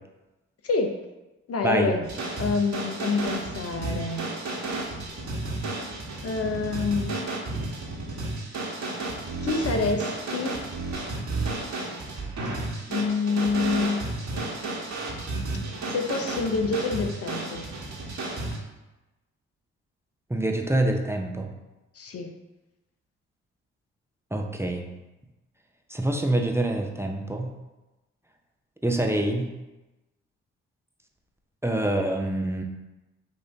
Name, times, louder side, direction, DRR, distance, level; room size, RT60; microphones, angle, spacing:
voice 1, 0.6-1.0 1.5-2.1 2.4-4.2 6.2-7.1 9.4-10.6 12.9-14.1 15.9-17.7 22.0-22.3, left 4 dB, 45° left, 4 dB, 0.8 m, -27 dB
sound 1, 2.0-18.6, right 2 dB, 55° right, 1.4 m, -32 dB
voice 2, 20.3-21.5 24.3-24.9 25.9-27.5 28.8-29.5 31.6-32.6, right 1 dB, 10° right, 2 dB, 0.7 m, -26 dB
5.8 x 2.6 x 3.4 m, 1.1 s
hypercardioid pair, 40°, 33 cm